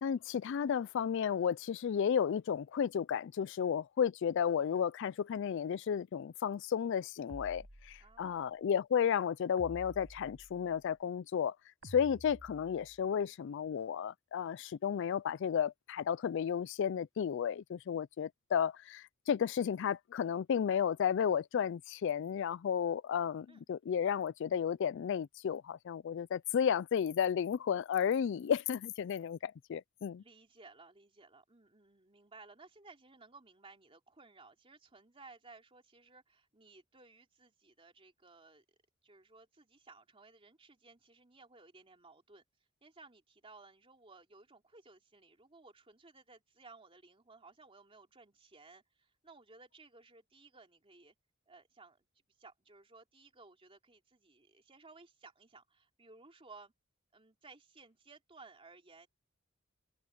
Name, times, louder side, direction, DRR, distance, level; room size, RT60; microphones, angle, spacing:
voice 1, 0.0-11.6 11.8-30.2, left 8 dB, 60° left, 0.3 m, -33 dB
sound 1, 7.3-8.4 9.6-10.8 11.8-13.1, equal, 70° right, 6.2 m, -52 dB
voice 2, 8.0-8.5 23.5-23.6 30.2-38.6 39.0-42.4 42.8-51.1 51.5-52.0 52.4-56.7 57.1-59.1, right 3 dB, 30° right, 3.0 m, -58 dB
head